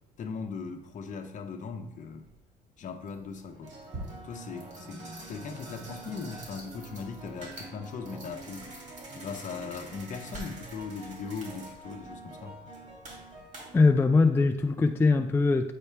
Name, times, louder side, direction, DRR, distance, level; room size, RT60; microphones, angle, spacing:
voice 1, 0.2-2.3 2.8-3.7 4.2-8.8 9.1-12.6, left 5 dB, 50° left, 6 dB, 0.9 m, -39 dB
sound 1, 2.2-2.4 3.0-13.9, right 2 dB, 45° right, 2.4 m, -44 dB
voice 2, 13.7-15.7, left 3 dB, 15° left, 5 dB, 0.3 m, -22 dB
8.3 x 4.4 x 3.4 m, 0.98 s
cardioid pair, 110°, 17 cm